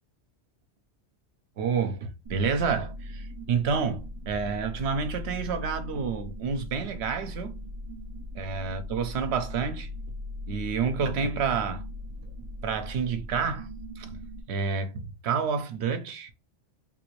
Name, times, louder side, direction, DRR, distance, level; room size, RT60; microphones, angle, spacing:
voice 1, 1.6-7.5 8.3-9.9 10.5-11.8 12.6-13.7 14.0-14.1 14.5-16.3, right 6 dB, 75° right, 0.9 m, -29 dB
sound 1, 2.2-14.4, left 1 dB, 50° right, 0.3 m, -39 dB
3.7 x 2.5 x 3.0 m
omnidirectional pair, 1.1 m